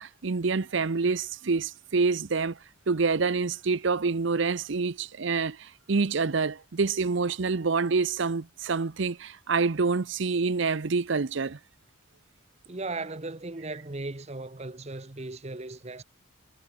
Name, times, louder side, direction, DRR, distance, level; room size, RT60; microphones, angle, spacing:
voice 1, 0.0-2.6 2.9-11.6, right 4 dB, 60° right, 0.7 m, -27 dB
voice 2, 12.7-16.0, right 2 dB, 30° right, 1.0 m, -37 dB
head